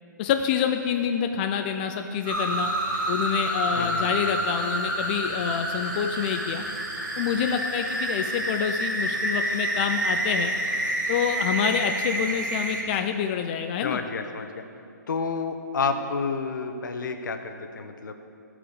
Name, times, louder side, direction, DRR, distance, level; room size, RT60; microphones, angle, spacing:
voice 1, 0.2-2.7 3.1-6.6 7.2-10.5 11.1-14.0, left 8 dB, 30° left, 6 dB, 0.4 m, -27 dB
sound 1, 2.3-12.8, right 1 dB, 80° right, 2.5 m, -28 dB
voice 2, 3.7-4.4 13.8-14.6 15.1-18.1, left 4 dB, 70° left, 7 dB, 1.0 m, -30 dB
14.5 x 4.9 x 6.6 m, 2.5 s
hypercardioid pair, 150°, 11 cm